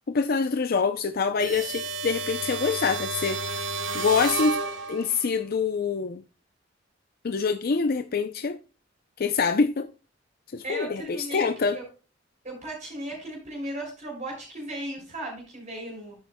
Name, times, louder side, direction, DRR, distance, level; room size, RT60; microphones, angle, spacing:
voice 1, 0.1-3.4 3.9-4.6 4.9-6.2 7.2-8.6 9.2-9.9 10.5-11.8, left 5 dB, 55° left, 0.5 m, -25 dB
sound 1, 1.4-5.3, right 3 dB, 80° right, 1.3 m, -31 dB
voice 2, 10.6-11.9 12.4-16.2, right 1 dB, 40° right, 4.1 m, -36 dB
10.0 x 9.0 x 2.2 m
head